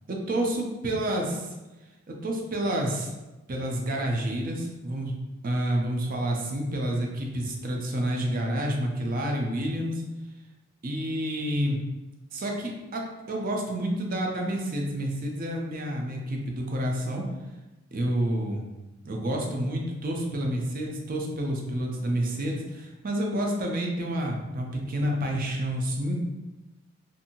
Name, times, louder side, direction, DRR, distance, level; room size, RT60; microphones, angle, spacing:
voice 1, 0.1-1.5 2.1-3.1 3.5-5.2 5.4-10.0 10.8-11.8 12.3-17.3 17.9-18.6 19.0-26.1, right 1 dB, 45° right, 0 dB, 0.5 m, -29 dB
2.6 x 2.6 x 2.8 m, 1.1 s
head